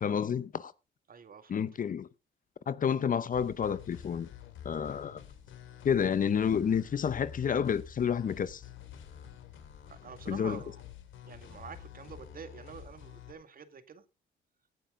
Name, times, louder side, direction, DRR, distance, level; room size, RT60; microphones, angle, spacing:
voice 1, 0.0-0.7 1.5-2.1 2.7-4.3 4.6-5.2 5.8-8.6 10.3-10.6, left 7 dB, 45° left, 0.8 m, -29 dB
voice 2, 1.1-1.6 9.9-10.8 11.2-14.0, right 6 dB, 45° right, 1.8 m, -47 dB
sound 1, 3.3-13.3, left 8 dB, 80° left, 2.5 m, -49 dB
16.5 x 8.9 x 3.7 m
cardioid pair, 90°, 20 cm